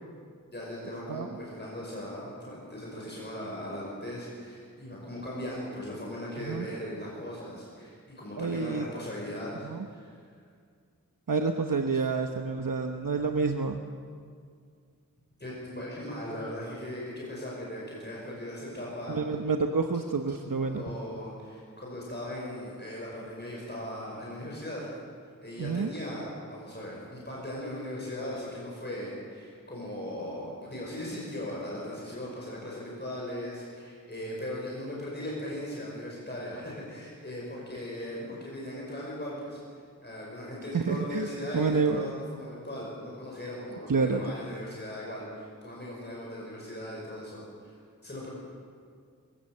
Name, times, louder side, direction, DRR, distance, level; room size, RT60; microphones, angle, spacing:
voice 1, 0.5-10.1 15.4-19.2 20.6-24.9 25.4-47.8 48.0-48.3, left 1 dB, 30° left, -4 dB, 5.7 m, -38 dB
voice 2, 6.4-6.7 8.4-8.9 9.6-9.9 11.3-13.8 19.1-20.8 25.6-25.9 40.7-41.3 41.5-42.0 43.9-44.3, right 4 dB, 70° right, 5 dB, 1.0 m, -28 dB
22.0 x 16.5 x 7.9 m, 2.1 s
wide cardioid pair, 60°, 34 cm